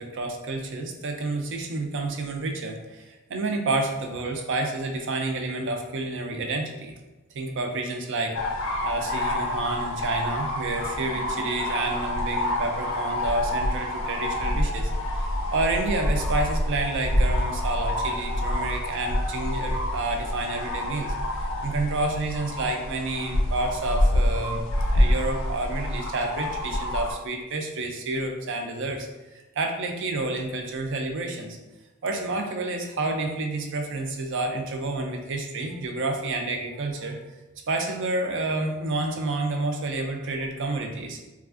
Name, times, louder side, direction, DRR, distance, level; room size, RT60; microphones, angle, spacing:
voice 1, 0.0-7.0 7.3-14.9 15.2-29.1 29.3-31.6 32.0-37.2 37.7-41.2, right 2 dB, 55° right, 3 dB, 0.4 m, -29 dB
sound 1, 8.3-27.1, left 1 dB, 60° left, 0.4 m, -27 dB
3.3 x 2.4 x 2.4 m, 1.1 s
head